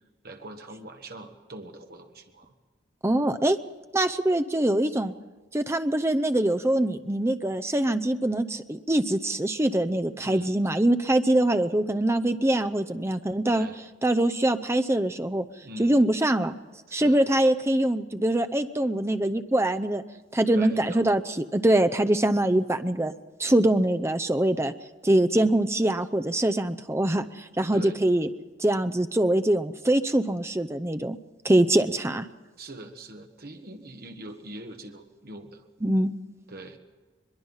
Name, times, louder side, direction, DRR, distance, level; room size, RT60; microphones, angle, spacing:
voice 1, 0.2-2.5 10.2-10.5 13.5-13.8 15.6-16.0 16.9-17.2 20.5-21.1 27.7-28.0 32.6-35.6 36.5-36.8, right 1 dB, 50° right, 4 dB, 1.6 m, -42 dB
voice 2, 3.0-3.6 3.9-5.1 5.5-13.7 14.0-15.4 15.8-16.5 16.9-20.0 20.3-23.1 23.4-24.7 25.0-28.3 28.6-31.2 31.4-32.3 35.8-36.1, right 1 dB, 15° right, 8 dB, 0.6 m, -23 dB
22.0 x 22.0 x 5.7 m, 1.3 s
head